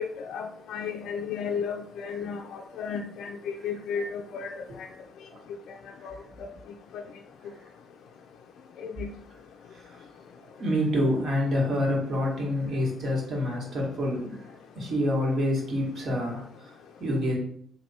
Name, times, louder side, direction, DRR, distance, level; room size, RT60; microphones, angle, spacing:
voice 1, 0.0-4.9 6.0-6.1 8.8-9.1, left 6 dB, 80° left, 3 dB, 0.3 m, -34 dB
voice 2, 10.6-14.4 14.7-16.4 17.0-17.4, left 1 dB, 60° right, -2 dB, 1.5 m, -27 dB
3.4 x 2.6 x 4.1 m, 0.66 s
cardioid pair, 90°, 0 cm